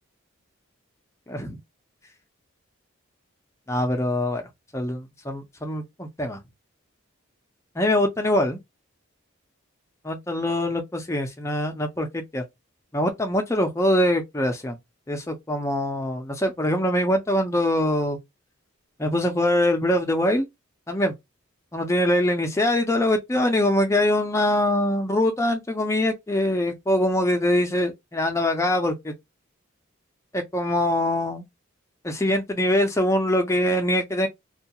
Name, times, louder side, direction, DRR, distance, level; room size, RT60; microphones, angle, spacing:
voice 1, 3.7-4.4 4.7-6.4 7.8-8.6 10.0-12.4 12.9-14.8 15.1-18.2 19.0-20.5 20.9-21.1 21.7-29.1 30.3-31.4 32.0-34.3, left 1 dB, 15° left, 0.4 m, -23 dB
2.3 x 2.2 x 2.7 m
head